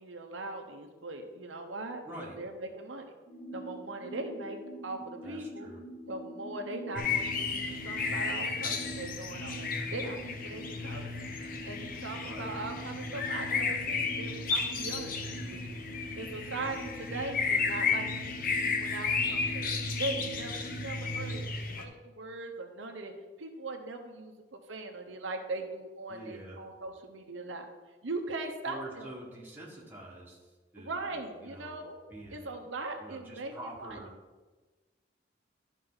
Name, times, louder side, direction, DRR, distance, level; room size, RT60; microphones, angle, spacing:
voice 1, 0.0-3.1 3.5-5.7 6.1-11.1 11.7-15.1 15.4-15.8 16.2-19.7 20.0-23.1 23.4-27.7 28.0-29.1 30.7-32.0 32.3-33.5 33.8-34.0, right 2 dB, 90° right, 4 dB, 0.9 m, -40 dB
voice 2, 2.0-2.4 5.2-5.8 12.2-12.5 26.1-26.6 28.6-31.1 31.4-31.8 32.1-32.6 33.0-34.1, right 1 dB, 10° right, -4 dB, 1.6 m, -46 dB
sound 1, 3.3-21.4, right 1 dB, 75° left, 1.7 m, -45 dB
sound 2, 7.0-21.8, left 4 dB, 45° left, 0.8 m, -33 dB
12.0 x 5.0 x 3.9 m, 1.3 s
head